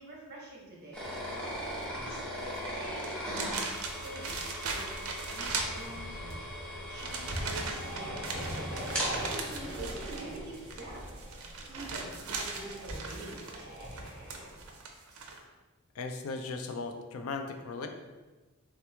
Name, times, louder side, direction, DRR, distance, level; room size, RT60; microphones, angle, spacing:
voice 1, 0.0-1.6 2.0-3.1 3.4-3.7 4.0-4.9 5.3-6.4 6.9-8.5 9.1-11.0 11.7-13.7, right 1 dB, 50° right, -2 dB, 0.9 m, -46 dB
sound 1, 0.9-11.7, equal, 5° left, 0.8 m, -39 dB
sound 2, 2.4-2.6 3.0-6.3 6.9-15.4, right 4 dB, 70° right, 0.5 m, -39 dB
sound 3, 5.4-14.7, equal, 40° left, 1.2 m, -42 dB
voice 2, 15.9-17.9, left 4 dB, 70° left, 5 dB, 0.4 m, -38 dB
3.4 x 2.9 x 3.4 m, 1.2 s
head